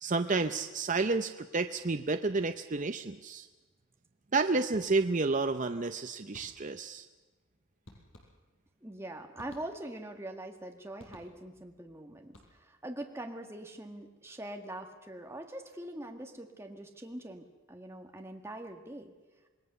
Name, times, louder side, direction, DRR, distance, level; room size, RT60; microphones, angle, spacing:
voice 1, 0.0-3.5 4.3-7.1, right 3 dB, 35° right, 8 dB, 0.6 m, -30 dB
sound 1, 4.7-5.3 6.3-6.9 7.9-8.7 9.4-10.1 11.0-11.7 12.2-12.9, left 1 dB, 65° left, 5.1 m, -56 dB
voice 2, 8.8-19.1, right 1 dB, 10° right, 3 dB, 1.7 m, -43 dB
26.5 x 20.0 x 6.8 m, 1.2 s
head